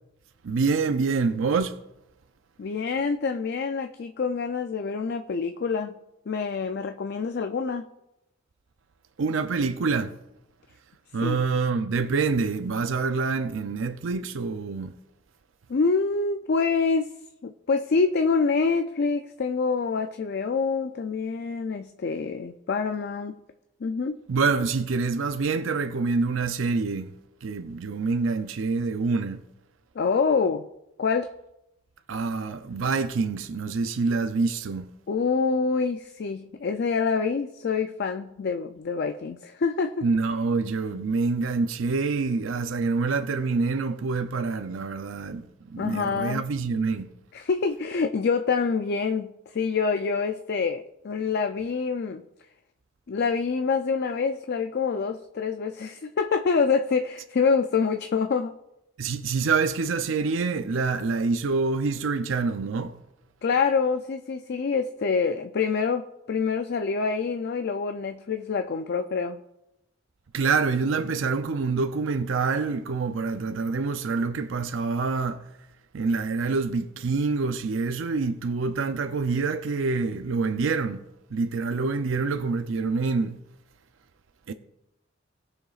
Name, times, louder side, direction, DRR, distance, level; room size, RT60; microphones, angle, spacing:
voice 1, 0.4-1.8 9.2-10.1 11.1-14.9 24.3-27.1 27.4-29.4 32.1-34.9 40.0-47.1 59.0-62.9 70.3-75.4 75.9-81.0 81.3-83.4 84.5-84.6, right 4 dB, 80° right, 0.5 m, -26 dB
voice 2, 2.6-5.9 6.3-7.8 11.2-11.4 15.7-17.1 17.4-23.4 23.8-24.2 30.0-30.6 31.0-31.3 35.1-40.1 40.9-41.0 45.8-46.4 47.3-52.2 53.1-58.5 63.4-69.4, left 5 dB, 55° left, 0.4 m, -26 dB
19.0 x 6.4 x 2.4 m
head